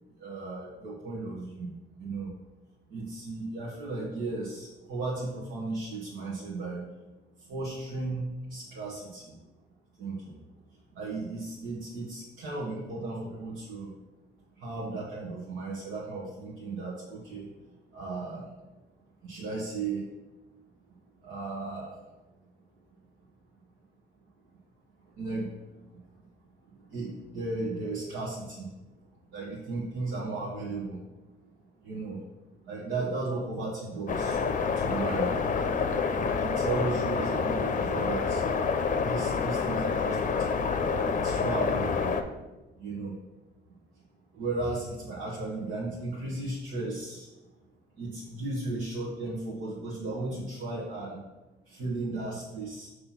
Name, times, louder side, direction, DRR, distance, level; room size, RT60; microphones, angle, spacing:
voice 1, 0.2-1.7 2.0-2.3 2.9-7.0 7.4-9.4 10.0-10.4 10.9-13.9 14.6-17.6 17.9-18.5 19.2-20.1 20.9-22.0 25.1-26.2 26.7-28.7 29.3-31.1 31.8-32.2 32.6-34.4 34.7-35.4 36.1-38.5 38.9-42.1 42.7-43.2 44.3-47.3 47.9-51.2 51.6-52.9, right 3 dB, 85° right, -6 dB, 1.5 m, -35 dB
sound 1, 34.1-42.2, left 5 dB, 40° left, 0.6 m, -28 dB
5.6 x 3.3 x 5.7 m, 1.1 s
cardioid pair, 90°, 20 cm